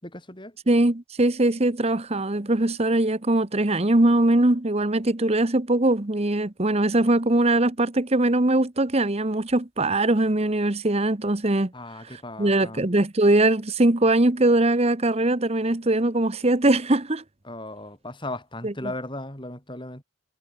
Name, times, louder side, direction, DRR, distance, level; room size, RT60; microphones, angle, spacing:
voice 1, 0.0-0.6 11.7-12.8 17.4-20.0, left 1 dB, 20° left, 6.1 m, -36 dB
voice 2, 0.7-11.7 12.1-17.2 18.6-18.7, right 2 dB, 30° right, 1.1 m, -21 dB
head